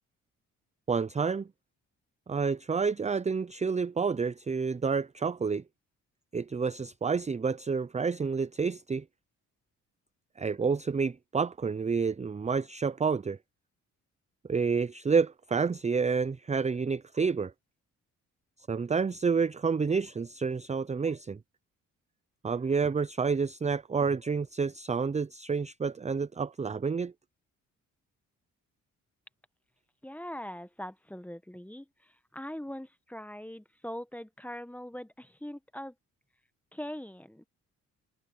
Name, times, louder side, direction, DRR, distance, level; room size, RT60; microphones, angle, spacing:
voice 1, 0.9-1.5 2.3-5.6 6.3-9.0 10.4-13.4 14.5-17.5 18.7-21.4 22.4-27.1, right 5 dB, 20° right, 0.6 m, -29 dB
voice 2, 30.0-35.9 36.7-37.5, left 1 dB, 5° left, 1.3 m, -42 dB
supercardioid pair, 55°, 35 cm